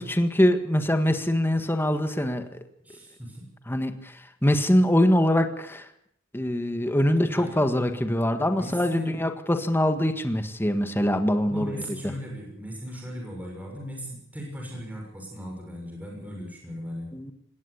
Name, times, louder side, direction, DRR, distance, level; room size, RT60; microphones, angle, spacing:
voice 1, 0.0-2.5 3.7-5.9 6.3-11.7 17.1-17.3, left 1 dB, 10° left, 7 dB, 1.6 m, -23 dB
voice 2, 2.8-3.5 7.3-7.7 8.5-9.3 11.4-17.1, equal, 10° right, -1 dB, 6.5 m, -38 dB
20.5 x 18.0 x 8.5 m, 0.69 s
head